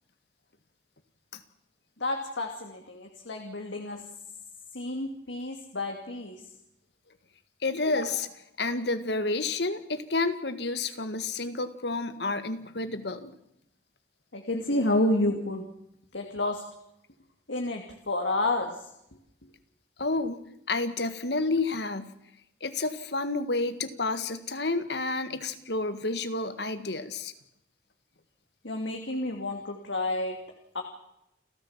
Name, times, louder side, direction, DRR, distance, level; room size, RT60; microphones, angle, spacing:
voice 1, 2.0-4.0 4.7-6.4 14.3-15.6 16.1-16.6 17.5-18.8 28.6-30.4 30.7-30.8, left 2 dB, 85° left, 2 dB, 2.7 m, -30 dB
voice 2, 7.6-13.3 20.0-22.1 22.6-27.3, left 3 dB, 65° left, 11 dB, 1.8 m, -30 dB
29.5 x 14.0 x 7.4 m, 0.79 s
head